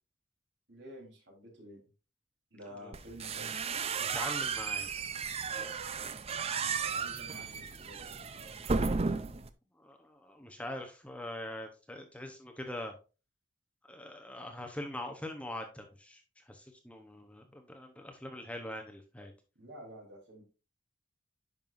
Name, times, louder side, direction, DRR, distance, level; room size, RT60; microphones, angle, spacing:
voice 1, 0.7-1.8 2.5-3.5 6.2-6.3 6.6-8.5 19.6-20.4, equal, 60° right, -1 dB, 3.5 m, -50 dB
sound 1, 2.9-9.5, right 5 dB, 30° right, 0.4 m, -34 dB
voice 2, 4.0-4.9 9.8-12.9 13.9-19.3, left 1 dB, 5° left, 3 dB, 0.8 m, -43 dB
10.5 x 5.5 x 2.5 m, 0.32 s
head